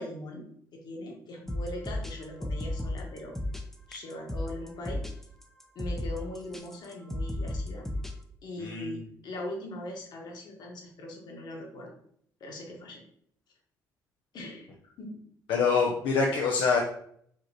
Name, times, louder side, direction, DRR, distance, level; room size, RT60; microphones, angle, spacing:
voice 1, 0.0-3.4 3.9-5.0 5.7-7.9 8.4-11.9 12.4-13.0 14.3-14.7 15.0-15.2, left 1 dB, 60° left, 0 dB, 1.5 m, -40 dB
sound 1, 1.5-8.2, left 1 dB, 5° left, 0.7 m, -34 dB
voice 2, 8.6-9.1 15.5-16.8, left 5 dB, 80° left, -1 dB, 0.7 m, -25 dB
5.1 x 3.1 x 2.9 m, 0.65 s
cardioid pair, 85°, 8 cm